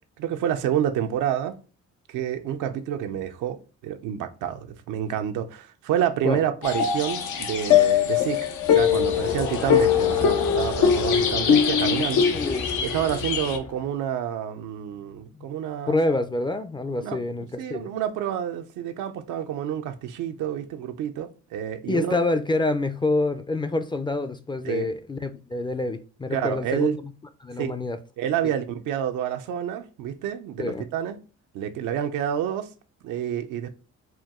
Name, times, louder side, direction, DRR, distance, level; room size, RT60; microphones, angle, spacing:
voice 1, 0.2-1.6 2.1-3.6 3.8-12.3 12.8-16.0 17.0-17.2 17.6-22.2 24.6-24.9 26.3-27.0 27.6-27.8 28.2-31.2 31.5-32.7 33.0-33.7, right 10 dB, 90° right, 0.6 m, -28 dB
sound 1, 6.6-13.6, left 8 dB, 90° left, 0.7 m, -22 dB
Crowd, 8.7-13.9, left 5 dB, 60° left, 0.7 m, -33 dB
voice 2, 12.3-12.8 15.9-17.9 21.9-27.0 27.4-28.0 30.6-30.9, left 2 dB, 15° left, 0.3 m, -27 dB
4.4 x 2.3 x 3.6 m
cardioid pair, 90°, 30 cm